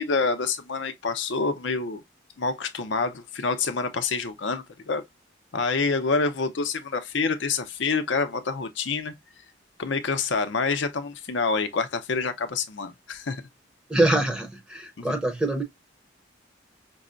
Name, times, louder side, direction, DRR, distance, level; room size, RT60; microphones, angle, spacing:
voice 1, 0.0-2.0 2.4-5.0 5.5-9.1 9.8-13.4 15.0-15.1, left 4 dB, 65° left, 0.6 m, -27 dB
voice 2, 13.9-15.6, right 1 dB, 5° right, 0.7 m, -24 dB
5.2 x 2.1 x 2.4 m
head